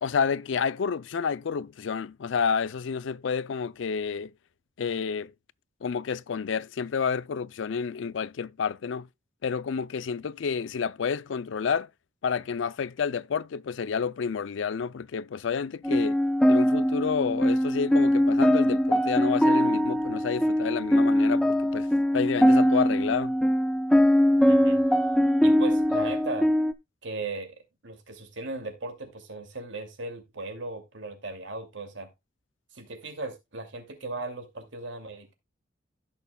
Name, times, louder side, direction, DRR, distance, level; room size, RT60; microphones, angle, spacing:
voice 1, 0.0-4.3 4.8-5.3 5.8-9.1 9.4-11.9 12.2-16.2 16.5-21.9 22.1-23.4, left 6 dB, 75° left, 0.4 m, -29 dB
sound 1, 15.8-26.7, equal, 5° left, 0.5 m, -22 dB
voice 2, 24.5-24.8 25.4-26.5 27.0-32.1 32.7-35.3, right 3 dB, 75° right, 2.4 m, -37 dB
16.0 x 6.5 x 2.2 m
head